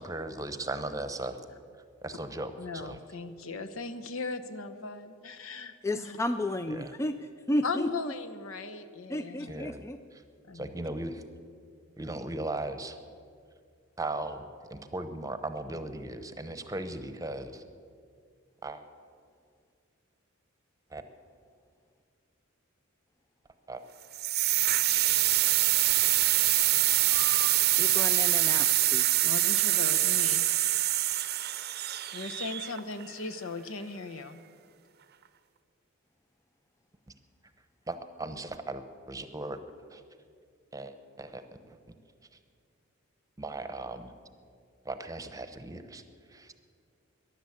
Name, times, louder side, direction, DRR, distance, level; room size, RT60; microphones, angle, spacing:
voice 1, 0.0-1.4 2.0-3.0 6.7-6.9 9.5-9.8 10.5-11.2 12.0-13.0 14.0-17.6 18.6-18.8 20.9-21.0 23.7-23.8 37.9-39.6 39.9-40.0 40.7-41.8 43.4-44.1 44.8-46.0 46.3-46.5, right 2 dB, 15° right, 9 dB, 0.9 m, -37 dB
voice 2, 2.6-6.2 7.6-9.6 10.5-10.8 29.2-30.5 32.1-34.4, left 4 dB, 80° left, 9 dB, 0.9 m, -38 dB
voice 3, 5.8-7.2 7.5-8.1 9.1-10.0 27.2-27.3 27.8-29.3, left 1 dB, 15° left, 9 dB, 0.4 m, -32 dB
sound 1, 24.1-33.0, right 14 dB, 50° right, 0.6 m, -25 dB
14.5 x 11.0 x 8.5 m, 2.2 s
head